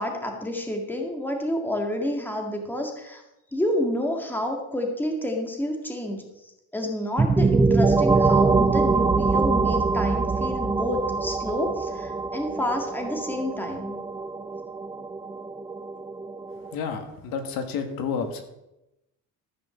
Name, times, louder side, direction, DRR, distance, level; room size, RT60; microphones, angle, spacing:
voice 1, 0.0-3.2 3.5-6.2 6.7-14.0, left 1 dB, 5° left, 2 dB, 1.9 m, -29 dB
sound 1, 7.2-16.7, right 4 dB, 10° right, 0.3 m, -24 dB
voice 2, 16.7-18.4, left 6 dB, 75° left, 6 dB, 2.0 m, -30 dB
14.0 x 6.1 x 7.1 m, 0.91 s
cardioid pair, 150°, 35 cm